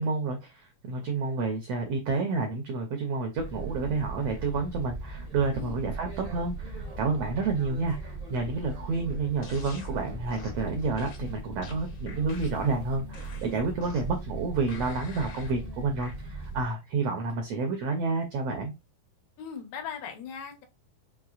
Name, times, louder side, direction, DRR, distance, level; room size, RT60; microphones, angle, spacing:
voice 1, 0.0-18.7, right 3 dB, 85° right, 1.4 m, -30 dB
sound 1, 3.3-16.7, right 2 dB, 50° right, 0.6 m, -39 dB
sound 2, 9.4-9.9 10.3-10.6 11.0-12.7 13.1-14.2 14.7-15.5 16.0-16.1, left 4 dB, 65° left, 1.3 m, -48 dB
voice 2, 19.4-20.7, left 7 dB, 90° left, 2.9 m, -39 dB
6.0 x 3.1 x 2.4 m
omnidirectional pair, 4.0 m